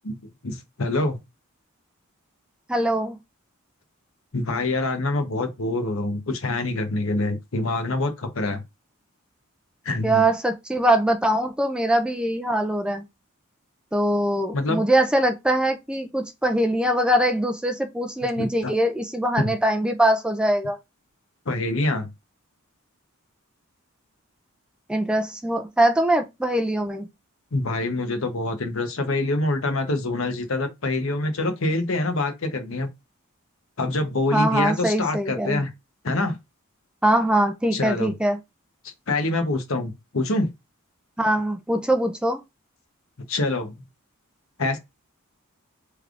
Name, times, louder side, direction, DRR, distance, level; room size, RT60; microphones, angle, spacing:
voice 1, 0.4-1.2 4.3-8.6 9.8-10.2 14.5-14.8 18.4-18.7 19.4-19.5 21.5-22.1 27.5-32.9 33.8-35.7 36.0-36.4 37.7-38.1 39.1-40.5 43.3-43.8 44.6-44.8, left 2 dB, 70° left, 0.9 m, -25 dB
voice 2, 2.7-3.2 10.0-13.0 13.9-20.8 24.9-27.1 34.3-35.6 37.0-38.4 41.2-42.4, right 1 dB, 5° right, 0.3 m, -22 dB
3.5 x 3.3 x 2.4 m
head